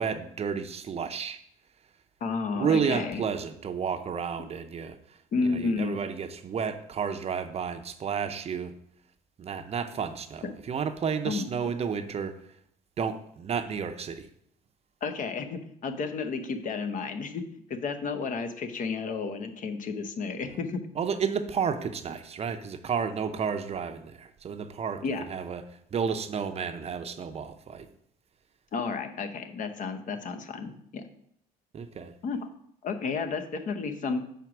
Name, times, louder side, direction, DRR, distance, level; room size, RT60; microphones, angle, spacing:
voice 1, 0.0-1.4 2.5-8.7 9.4-12.4 13.0-14.3 20.9-25.6 25.9-27.9 31.7-32.1, right 6 dB, 40° right, 0.6 m, -31 dB
voice 2, 2.2-3.2 5.3-6.0 11.2-11.5 15.0-17.4 17.7-20.8 25.0-25.2 28.7-31.0 32.2-32.4 32.8-34.2, left 4 dB, 50° left, 0.8 m, -31 dB
5.1 x 4.6 x 6.0 m
cardioid pair, 110°, 17 cm